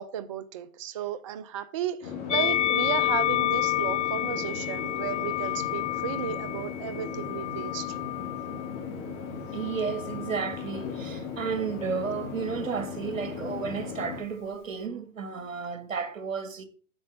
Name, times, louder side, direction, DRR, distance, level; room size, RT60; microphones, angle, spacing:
voice 1, 0.0-8.0, right 10 dB, 25° right, 0.3 m, -34 dB
sound 1, 2.0-14.2, left 6 dB, 35° left, 2.9 m, -37 dB
Musical instrument, 2.3-8.7 9.5-10.5, left 13 dB, 60° left, 1.0 m, -29 dB
voice 2, 9.5-16.7, right 6 dB, 75° right, 1.8 m, -32 dB
8.0 x 6.8 x 6.5 m
hypercardioid pair, 120°, 40 cm